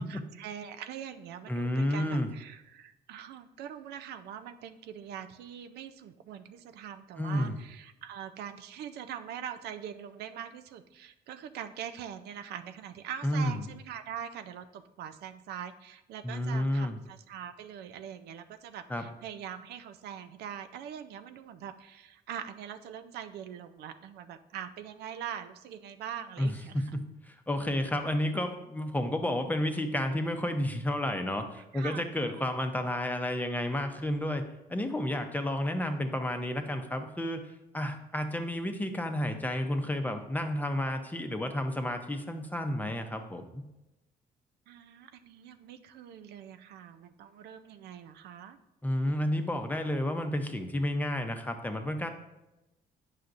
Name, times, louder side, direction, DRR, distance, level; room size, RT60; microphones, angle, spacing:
voice 1, 0.0-26.8 31.6-32.4 44.7-48.6, right 9 dB, 90° right, 9 dB, 0.5 m, -43 dB
voice 2, 1.5-2.3 7.2-7.6 13.2-13.6 16.2-17.0 18.9-19.0 26.4-34.4 34.7-37.4 37.7-43.6 48.8-52.1, left 1 dB, 10° left, 6 dB, 0.6 m, -31 dB
9.3 x 5.7 x 2.5 m, 0.97 s
cardioid pair, 120°, 16 cm